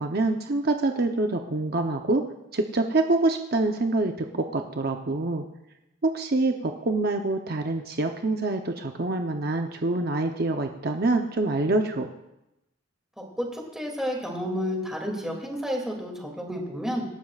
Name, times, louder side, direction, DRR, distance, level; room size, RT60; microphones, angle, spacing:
voice 1, 0.0-2.2 2.5-5.5 6.0-12.1, right 2 dB, 50° right, 4 dB, 0.8 m, -26 dB
voice 2, 13.2-17.0, equal, 5° right, -1 dB, 2.6 m, -31 dB
25.5 x 12.5 x 2.4 m, 0.90 s
head